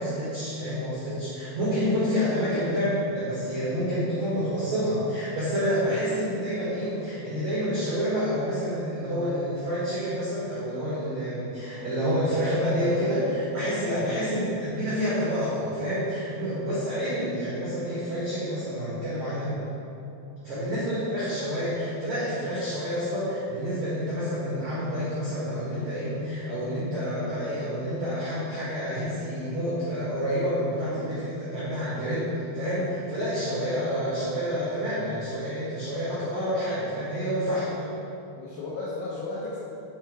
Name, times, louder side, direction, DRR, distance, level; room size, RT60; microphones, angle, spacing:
voice 1, 0.0-19.6 20.4-37.6, equal, 75° right, -10 dB, 1.6 m, -28 dB
voice 2, 2.5-2.8 5.9-6.2 14.0-14.3 20.5-20.9 30.9-31.1 37.5-37.8 38.4-39.6, left 3 dB, 80° left, -6 dB, 2.4 m, -37 dB
5.8 x 5.7 x 4.6 m, 2.9 s
omnidirectional pair, 5.6 m